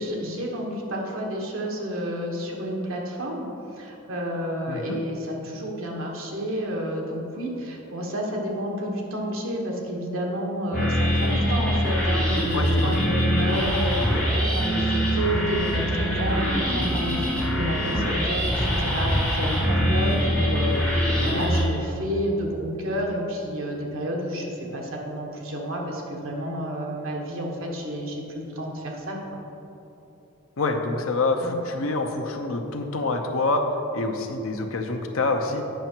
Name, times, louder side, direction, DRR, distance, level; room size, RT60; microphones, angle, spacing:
voice 1, 0.0-29.4 31.4-31.5, equal, 75° right, -1 dB, 1.3 m, -30 dB
voice 2, 4.7-5.0 12.5-12.9 21.1-21.4 30.6-33.6 33.9-35.6, left 3 dB, 80° left, 4 dB, 0.7 m, -26 dB
sound 1, 10.7-21.6, equal, 5° left, 1.7 m, -23 dB
9.0 x 5.7 x 4.5 m, 3.0 s
head